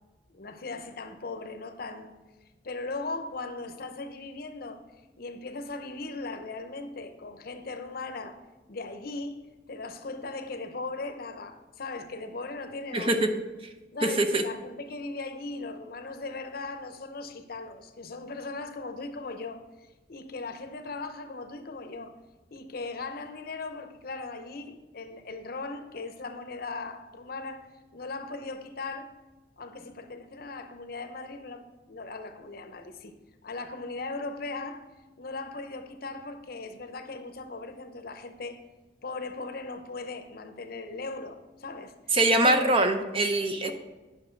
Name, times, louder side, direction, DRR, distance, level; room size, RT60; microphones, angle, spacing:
voice 1, 0.3-2.2 2.6-4.8 5.2-8.4 8.7-9.4 9.7-13.2 13.9-22.1 22.5-29.2 29.6-33.1 33.4-34.9 35.2-38.6 39.0-41.9 42.4-42.8 43.6-43.7, left 3 dB, 55° left, 0.7 m, -38 dB
voice 2, 12.9-13.3 14.0-14.4 42.1-43.7, right 2 dB, 30° right, 0.7 m, -23 dB
10.0 x 6.1 x 4.5 m
head